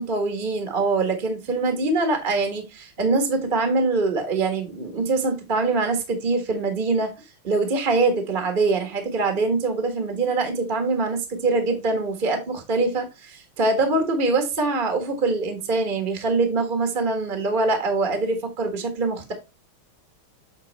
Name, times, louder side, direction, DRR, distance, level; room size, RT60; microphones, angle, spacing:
voice 1, 0.0-7.1 7.4-19.3, right 3 dB, 25° right, 1.5 m, -23 dB
8.3 x 4.1 x 4.1 m
omnidirectional pair, 2.3 m